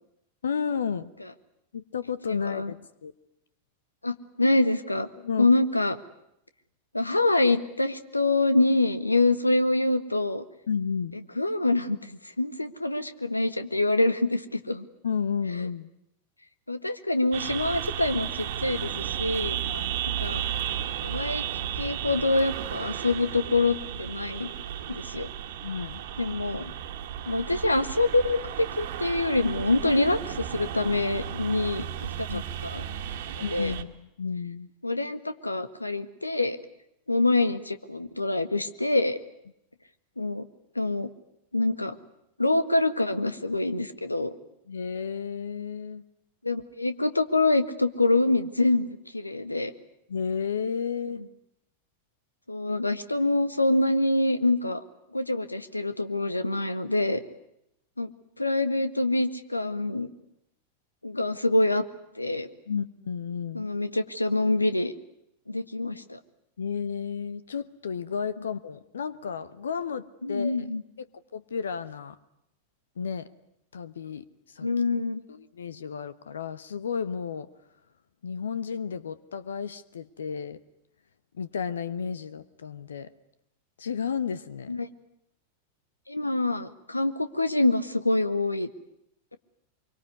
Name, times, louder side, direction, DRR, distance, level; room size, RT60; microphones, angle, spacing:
voice 1, 0.4-1.1 1.7-2.8 3.0-3.1 5.2-5.5 10.7-11.2 15.0-15.9 19.7-19.9 25.6-26.0 32.3-32.4 33.4-34.7 44.7-46.0 50.1-51.2 62.7-63.7 66.6-70.7 71.3-72.2 73.0-73.3 73.7-74.7 75.3-77.5 78.2-80.6 81.3-83.1 83.8-84.8, left 6 dB, 65° left, 16 dB, 1.1 m, -32 dB
voice 2, 2.3-2.7 4.0-5.1 5.4-6.0 6.9-10.4 11.4-14.8 16.7-19.6 20.2-20.4 21.0-21.4 21.8-24.5 24.9-25.3 26.2-26.7 27.2-32.8 33.5-33.7 34.8-36.6 37.1-39.2 40.2-40.4 40.7-41.1 41.5-41.9 42.4-44.3 46.4-49.7 52.5-54.8 55.1-57.2 58.0-58.1 58.4-60.1 61.0-61.8 62.1-62.5 63.5-64.9 65.5-66.2 70.2-70.8 74.6-75.2 84.7-84.9 86.1-88.7, left 2 dB, 85° left, 12 dB, 1.6 m, -25 dB
sound 1, 17.3-33.8, right 10 dB, 55° right, 1.9 m, -34 dB
25.5 x 24.0 x 9.6 m, 0.81 s
figure-of-eight pair, 90°, 0 cm